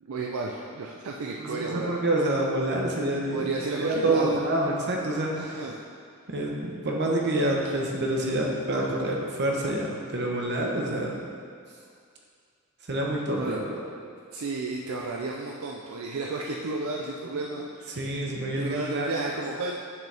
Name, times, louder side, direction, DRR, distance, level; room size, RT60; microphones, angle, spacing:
voice 1, 0.0-2.0 3.3-4.4 5.3-5.8 13.3-13.6 14.3-18.2 18.6-19.8, right 3 dB, 75° right, -1 dB, 0.5 m, -32 dB
voice 2, 1.4-3.5 3.8-5.6 6.3-11.1 12.9-13.8 17.9-19.1, right 1 dB, 55° right, -1 dB, 1.0 m, -27 dB
7.8 x 6.2 x 3.4 m, 2.2 s
head